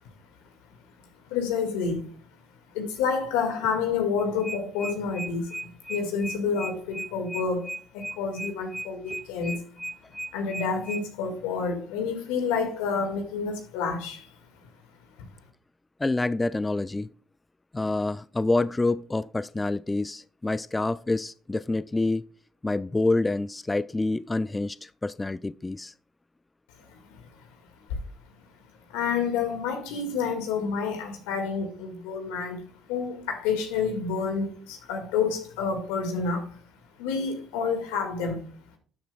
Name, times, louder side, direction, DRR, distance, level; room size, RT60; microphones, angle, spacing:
voice 1, 1.3-2.1 2.7-9.6 10.3-14.3 26.8-27.2 28.9-36.6 37.0-38.4, left 5 dB, 85° left, 1.9 m, -29 dB
sound 1, 4.2-11.0, right 1 dB, 5° left, 0.9 m, -36 dB
voice 2, 16.0-17.1 17.7-22.3 22.6-25.9, left 2 dB, 20° left, 0.3 m, -27 dB
12.5 x 6.9 x 2.3 m
supercardioid pair, 65°, 0 cm